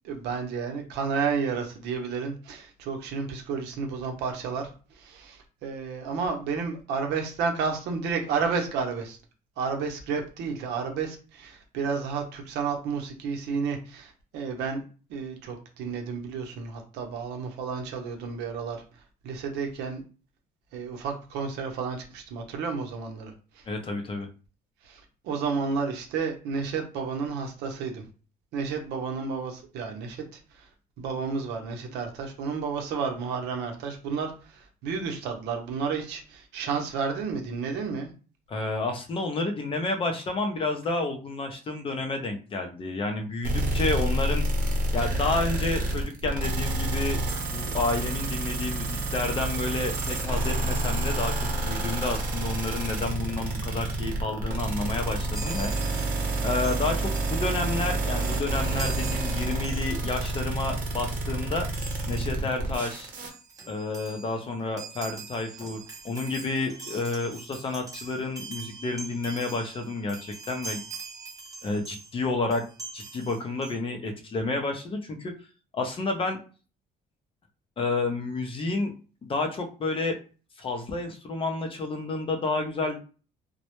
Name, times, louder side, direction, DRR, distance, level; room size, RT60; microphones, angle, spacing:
voice 1, 0.0-9.2 9.6-14.8 15.1-18.8 19.2-20.0 20.7-23.6 24.8-28.0 28.5-30.2 30.5-30.7 31.0-38.1, right 5 dB, 85° right, 3 dB, 0.6 m, -31 dB
voice 2, 23.7-24.3 38.5-44.4 44.9-51.3 51.6-56.1 56.4-61.7 62.1-63.1 63.7-70.2 70.5-70.8 71.6-72.6 72.9-75.3 75.7-76.4 77.8-78.9 79.2-80.2 80.6-83.0, left 3 dB, 30° left, 4 dB, 0.5 m, -30 dB
sound 1, 43.4-63.3, right 2 dB, 55° right, 0.8 m, -28 dB
Chime, 55.3-60.3 60.6-60.8 61.7-62.3 62.9-63.0 63.2-72.2 72.5-73.8, right 4 dB, 20° right, 0.7 m, -43 dB
2.1 x 2.0 x 2.9 m, 0.36 s
cardioid pair, 110°, 17 cm